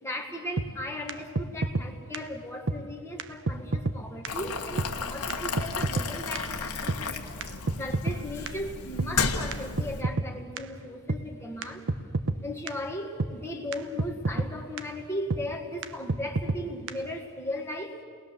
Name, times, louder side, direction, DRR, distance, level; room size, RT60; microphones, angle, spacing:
voice 1, 0.0-7.4 7.8-11.9 12.4-18.0, left 1 dB, 10° left, 1 dB, 1.6 m, -37 dB
sound 1, 0.6-0.7 1.1-1.2 1.4-1.9 2.1-2.2 2.7-2.8 3.2-3.3 3.5-4.0 4.2-4.3 4.8-4.9 5.3-5.4 5.6-6.1 6.4-6.5 6.9-7.0 7.4-8.2 8.5-8.6 9.0-9.1 9.5-9.6 9.8-10.3 10.6-10.7 11.1-11.2 11.6-11.7 11.9-12.4 12.7-12.8 13.2-13.3 13.7-13.8 14.0-14.5 14.8-14.9 15.3-15.4 15.8-15.9 16.1-16.6 16.9-17.0, right 3 dB, 55° right, 0.9 m, -28 dB
Boiling, 4.3-10.0, left 5 dB, 90° left, 1.6 m, -33 dB
30.0 x 20.5 x 7.0 m, 2.2 s
head